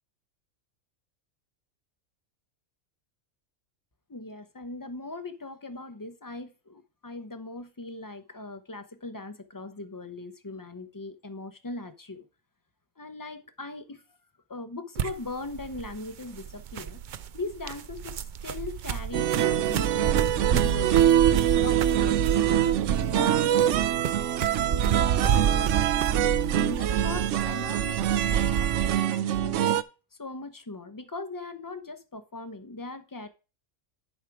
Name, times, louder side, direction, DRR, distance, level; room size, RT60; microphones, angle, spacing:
voice 1, 4.1-12.3 13.0-14.2 14.5-17.0 17.3-18.2 18.4-20.1 20.3-21.0 21.5-22.6 23.0-23.9 24.5-29.6 30.1-33.3, left 2 dB, 20° left, 0.5 m, -39 dB
sound 1, 14.9-29.0, right 8 dB, 85° right, 0.4 m, -30 dB
sound 2, 19.1-29.8, right 11 dB, 70° right, 0.9 m, -24 dB
11.0 x 4.9 x 4.6 m
omnidirectional pair, 1.4 m